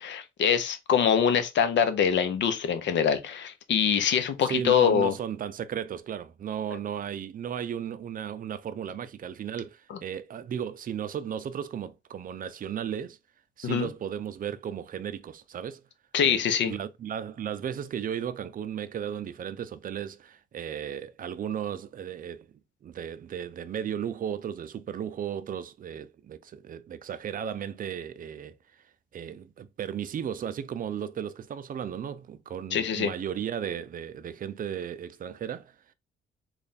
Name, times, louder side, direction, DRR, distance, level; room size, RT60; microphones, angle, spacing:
voice 1, 0.0-5.1 9.9-10.0 13.6-13.9 16.1-16.7 32.7-33.1, left 7 dB, 65° left, 0.7 m, -24 dB
voice 2, 4.5-13.2 13.6-15.8 16.2-22.5 22.8-28.6 29.1-35.7, right 9 dB, 45° right, 0.5 m, -35 dB
3.3 x 2.4 x 4.0 m
cardioid pair, 90°, 20 cm